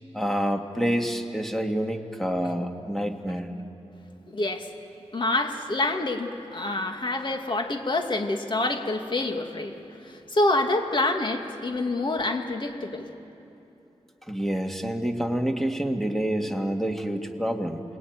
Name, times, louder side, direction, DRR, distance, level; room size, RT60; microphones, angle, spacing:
voice 1, 0.1-3.5 14.3-17.8, equal, 5° left, 3 dB, 2.4 m, -27 dB
voice 2, 4.3-4.7 5.1-9.7 10.0-13.1, left 2 dB, 45° left, 4 dB, 2.5 m, -27 dB
28.5 x 22.0 x 9.6 m, 2.8 s
wide cardioid pair, 75°, 11 cm